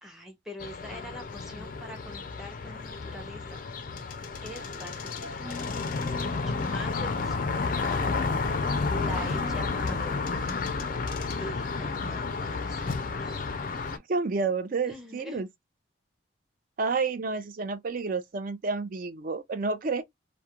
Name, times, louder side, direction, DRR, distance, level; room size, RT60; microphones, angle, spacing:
voice 1, 0.0-3.6 4.4-5.8 6.2-8.0 8.9-10.2 11.4-13.5 14.9-15.4, equal, ahead, 0.7 m, -43 dB
sound 1, 0.6-14.0, left 4 dB, 45° left, 0.3 m, -31 dB
sound 2, 4.5-11.3, right 1 dB, 60° right, 1.2 m, -46 dB
voice 2, 13.9-15.5 16.8-20.0, right 4 dB, 45° right, 0.4 m, -30 dB
2.3 x 2.1 x 2.8 m
head